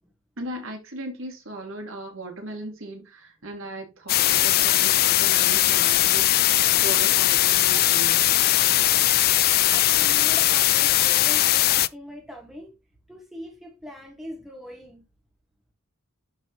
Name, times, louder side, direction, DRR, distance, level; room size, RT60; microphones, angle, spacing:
voice 1, 0.4-8.2, right 2 dB, 65° right, 2.3 m, -37 dB
sound 1, 4.1-11.9, left 15 dB, 45° left, 0.3 m, -20 dB
voice 2, 9.7-12.7 13.1-15.0, equal, ahead, 1.7 m, -41 dB
11.0 x 4.0 x 3.0 m
head